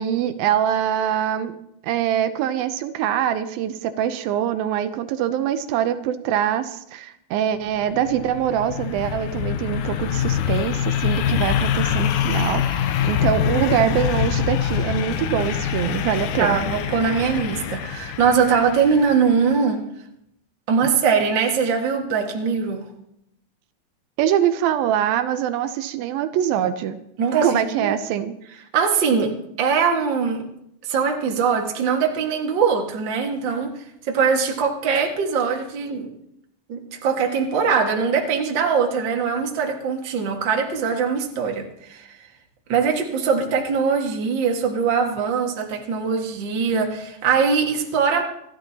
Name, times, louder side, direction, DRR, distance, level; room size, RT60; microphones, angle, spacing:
voice 1, 0.0-1.6 1.8-16.6 24.2-27.0 27.4-28.3, right 10 dB, 80° right, 10 dB, 2.5 m, -23 dB
sound 1, 7.7-19.4, left 9 dB, 75° left, 2.0 m, -25 dB
voice 2, 13.5-14.0 16.4-19.8 20.7-22.9 27.2-28.0 28.7-29.3 29.6-30.4 30.8-33.7 34.0-36.1 36.7-42.1 42.7-48.2, right 6 dB, 45° right, 1 dB, 1.7 m, -22 dB
26.5 x 11.5 x 2.8 m, 0.79 s
omnidirectional pair, 4.2 m